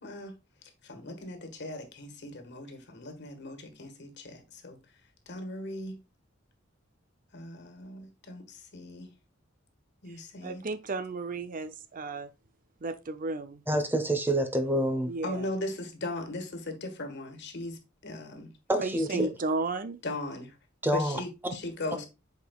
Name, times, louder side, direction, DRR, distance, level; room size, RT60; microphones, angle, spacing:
voice 1, 0.0-6.0 7.3-9.1 10.0-10.6 15.2-18.5 19.1-19.3 20.0-20.6 20.9-22.1, left 2 dB, 60° left, 1.6 m, -39 dB
voice 2, 10.4-12.3 12.8-13.6 15.1-15.4 18.8-20.0, right 3 dB, 45° right, 0.6 m, -33 dB
voice 3, 13.7-15.1 18.7-19.1 20.8-21.2, right 1 dB, 10° right, 0.9 m, -27 dB
8.2 x 5.0 x 2.4 m
head